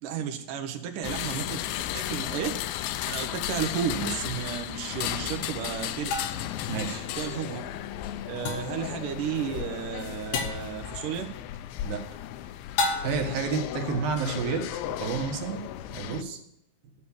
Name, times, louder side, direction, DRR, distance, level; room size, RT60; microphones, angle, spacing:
voice 1, 0.0-1.6 1.9-2.6 3.1-6.1 7.2-7.6 8.3-11.3, right 8 dB, 85° right, 4 dB, 1.8 m, -33 dB
sound 1, 1.0-16.2, left 12 dB, 85° left, 2.9 m, -35 dB
sound 2, 4.0-4.1 6.1-6.6 8.5-8.8 10.3-10.7 12.8-13.4, left 3 dB, 70° left, 2.0 m, -30 dB
sound 3, 5.4-11.6, left 5 dB, 40° left, 1.6 m, -47 dB
voice 2, 6.7-7.1 11.8-12.0 13.0-15.6 15.9-16.4, right 5 dB, 65° right, 4 dB, 2.7 m, -30 dB
12.0 x 6.6 x 7.1 m, 0.79 s
omnidirectional pair, 5.4 m